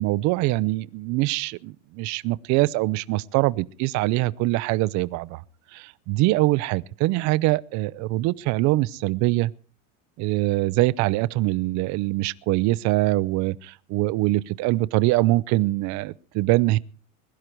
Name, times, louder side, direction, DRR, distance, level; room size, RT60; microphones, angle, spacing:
voice 1, 0.0-5.4 5.7-9.5 10.2-16.8, right 19 dB, 45° right, 0.6 m, -23 dB
21.5 x 11.5 x 4.6 m
cardioid pair, 155°, 40 cm